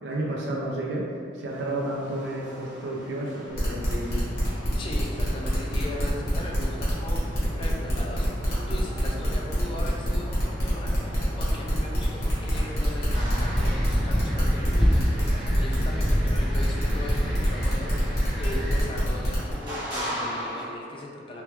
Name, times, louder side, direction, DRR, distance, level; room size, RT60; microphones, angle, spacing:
voice 1, 0.0-4.2, right 1 dB, 65° right, -2 dB, 0.5 m, -31 dB
sound 1, 1.5-20.6, equal, 25° right, 0.9 m, -41 dB
sound 2, 3.5-19.5, equal, 55° left, 1.1 m, -29 dB
voice 2, 4.8-21.4, left 1 dB, 30° left, -2 dB, 0.3 m, -39 dB
sound 3, 12.7-18.8, equal, ahead, 0.7 m, -27 dB
3.2 x 2.2 x 3.0 m, 2.2 s
head